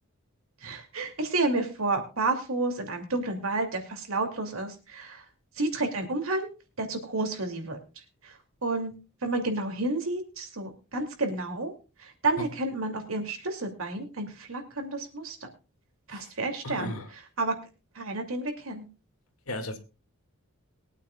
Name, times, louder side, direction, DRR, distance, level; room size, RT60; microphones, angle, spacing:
voice 1, 0.6-5.2 5.6-6.5 6.8-7.8 8.2-8.4 8.6-8.9 9.2-11.7 12.0-15.5 16.1-16.9 17.4-17.5 17.9-18.9, right 2 dB, 70° right, 5 dB, 2.6 m, -30 dB
voice 2, 16.6-17.1 19.5-19.8, left 1 dB, 80° left, 6 dB, 2.1 m, -35 dB
22.5 x 9.1 x 2.3 m, 0.31 s
head